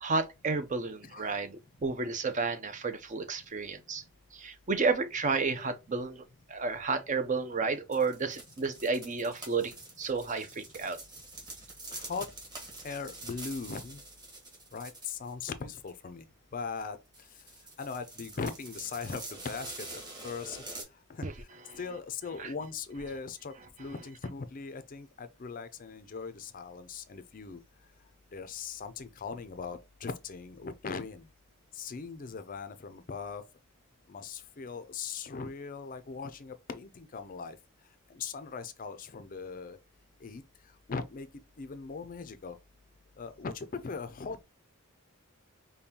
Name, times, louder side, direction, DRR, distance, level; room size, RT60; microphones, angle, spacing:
voice 1, 0.0-4.0 4.3-6.2 6.5-11.0 21.2-21.3 22.4-22.5, right 4 dB, 35° right, 0.5 m, -31 dB
sound 1, 7.9-15.4 15.7-15.9 16.8-16.9 17.1-20.8, right 2 dB, 20° right, 1.4 m, -46 dB
voice 2, 11.9-12.3 12.8-14.0 14.7-16.2 16.5-17.0 17.8-19.7 20.2-20.6 21.1-21.3 21.8-23.5 23.8-27.6 28.3-31.3 31.7-33.4 34.1-37.6 38.1-39.8 40.2-40.4 40.9-41.3 41.6-42.6 43.2-44.4, left 5 dB, 40° left, 0.4 m, -39 dB
5.2 x 2.2 x 2.8 m
head